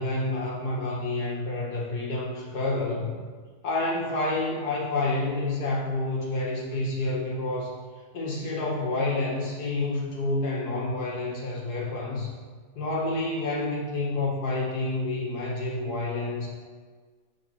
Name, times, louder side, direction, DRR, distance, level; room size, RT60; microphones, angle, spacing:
voice 1, 0.0-3.2 3.6-7.8 8.1-12.3 12.7-16.5, left 2 dB, 80° left, -3 dB, 2.4 m, -29 dB
10.5 x 4.7 x 5.8 m, 1.5 s
omnidirectional pair, 1.7 m